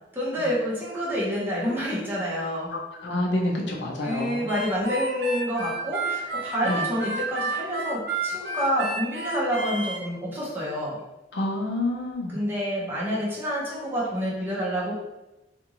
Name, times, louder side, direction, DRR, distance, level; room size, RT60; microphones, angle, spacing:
voice 1, 0.1-2.7 4.0-11.0 12.3-14.9, equal, 15° right, -7 dB, 0.8 m, -28 dB
voice 2, 2.7-4.5 6.6-6.8 11.3-12.4, left 1 dB, 80° left, 0 dB, 0.6 m, -28 dB
Harmonica, 4.5-10.0, right 3 dB, 70° right, 0.6 m, -31 dB
2.5 x 2.5 x 2.9 m, 1.0 s
head